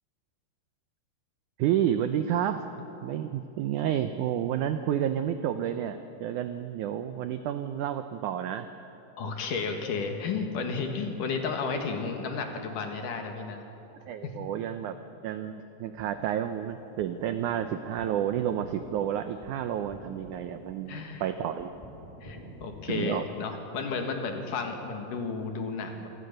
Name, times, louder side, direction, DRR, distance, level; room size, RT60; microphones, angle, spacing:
voice 1, 1.6-2.6 3.0-8.7 14.1-15.0 15.2-21.7 22.9-23.2, right 10 dB, 85° right, 9 dB, 1.7 m, -30 dB
voice 2, 9.2-13.6 14.2-14.5 20.9-21.2 22.2-26.1, left 4 dB, 60° left, 4 dB, 3.0 m, -33 dB
sound 1, 15.8-23.0, equal, 10° left, 3.6 m, -50 dB
26.5 x 18.0 x 6.7 m, 2.9 s
omnidirectional pair, 4.4 m